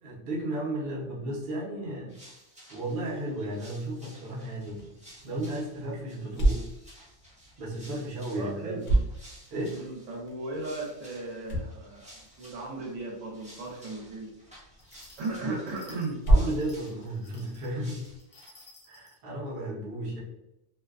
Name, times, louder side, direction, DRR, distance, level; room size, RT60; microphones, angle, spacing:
voice 1, 0.0-2.1 2.7-4.9 5.2-6.6 7.6-9.0 9.5-9.8 15.4-15.6 16.3-18.0 18.9-20.2, right 1 dB, 55° right, -3 dB, 0.8 m, -34 dB
sound 1, 2.1-18.7, equal, 10° right, 0.5 m, -54 dB
sound 2, 4.6-18.2, right 1 dB, 65° left, 0.8 m, -33 dB
voice 2, 8.4-8.8 9.7-14.3 15.2-16.2, right 2 dB, 80° right, -2 dB, 1.0 m, -36 dB
sound 3, 14.8-19.2, left 2 dB, 50° left, 0.5 m, -55 dB
2.5 x 2.1 x 2.3 m, 0.91 s
omnidirectional pair, 1.3 m